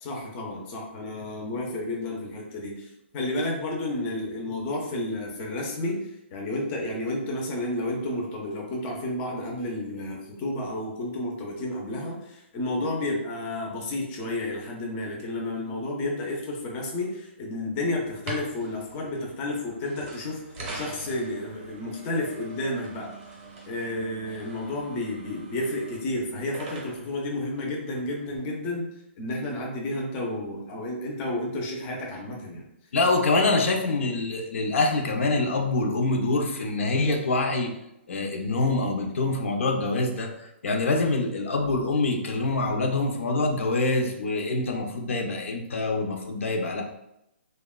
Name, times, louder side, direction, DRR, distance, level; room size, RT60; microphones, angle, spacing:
voice 1, 0.0-20.4 20.7-23.1 23.7-28.9 29.2-32.6, left 1 dB, 20° left, -1 dB, 0.4 m, -31 dB
sound 1, 18.1-28.4, right 3 dB, 25° right, 0.6 m, -43 dB
voice 2, 32.9-37.7 38.1-46.8, left 2 dB, 80° left, 2 dB, 0.5 m, -25 dB
2.8 x 2.1 x 2.2 m, 0.84 s
hypercardioid pair, 160°, 7 cm